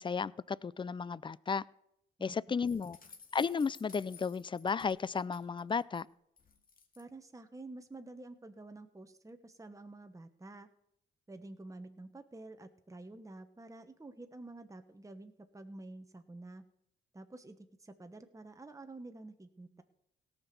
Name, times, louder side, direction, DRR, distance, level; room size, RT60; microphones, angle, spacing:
voice 1, 0.0-1.6 2.2-3.0 3.3-6.1, left 5 dB, 25° left, 22 dB, 0.4 m, -34 dB
sound 1, 2.6-6.0 6.4-7.0, left 5 dB, 45° left, 2.2 m, -55 dB
voice 2, 7.0-10.7 11.3-16.6 17.1-19.8, right 2 dB, 15° right, 8 dB, 1.2 m, -49 dB
17.5 x 6.0 x 6.8 m, 0.78 s
hypercardioid pair, 50°, 21 cm